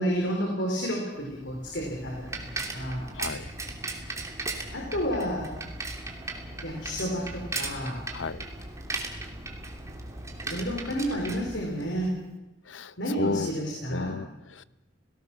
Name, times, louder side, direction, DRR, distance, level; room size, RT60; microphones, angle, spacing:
voice 1, 0.0-2.5 2.7-3.0 4.7-5.5 6.6-8.0 10.5-12.1 13.0-14.1, equal, 70° left, -1 dB, 4.6 m, -30 dB
Bicycle, 1.3-12.2, right 2 dB, 15° right, 2.9 m, -37 dB
voice 2, 3.1-3.5 8.1-8.4 12.6-13.5 13.9-14.6, left 4 dB, 85° left, 16 dB, 0.8 m, -33 dB
29.0 x 18.5 x 6.3 m, 1.1 s
head